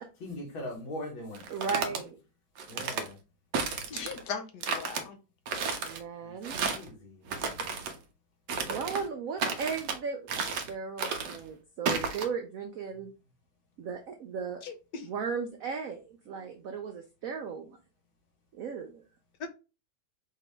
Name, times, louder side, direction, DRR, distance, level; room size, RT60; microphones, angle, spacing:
voice 1, 0.2-2.0 2.7-3.2 6.2-6.3 6.6-7.2, left 1 dB, 90° left, 2.2 m, -41 dB
sound 1, 1.3-2.0 2.6-3.1 3.5-4.2 4.6-5.0 5.5-6.0 6.4-6.9 7.3-7.9 8.5-9.1 9.4-10.0 10.3-10.7 11.0-11.4 11.9-12.2, right 5 dB, 65° right, 1.2 m, -32 dB
voice 2, 1.5-2.2 2.7-3.1 5.8-6.5 8.6-13.1 13.8-14.6 15.0-17.8 18.5-19.0, right 6 dB, 90° right, 0.7 m, -36 dB
voice 3, 3.9-5.2 14.6-15.1 19.4-19.5, left 6 dB, 70° left, 1.2 m, -38 dB
5.0 x 2.8 x 3.3 m
omnidirectional pair, 2.1 m